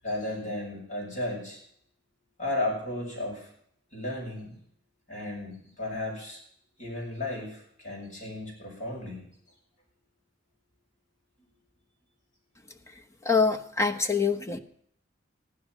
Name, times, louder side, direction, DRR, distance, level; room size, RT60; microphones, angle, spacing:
voice 1, 0.0-1.6 2.4-3.5 3.9-4.6 5.1-6.4 6.8-9.2 11.4-11.5, left 1 dB, 40° left, -3 dB, 7.7 m, -34 dB
voice 2, 13.2-14.6, left 4 dB, 15° left, 5 dB, 1.0 m, -25 dB
15.0 x 11.5 x 6.2 m, 0.67 s
head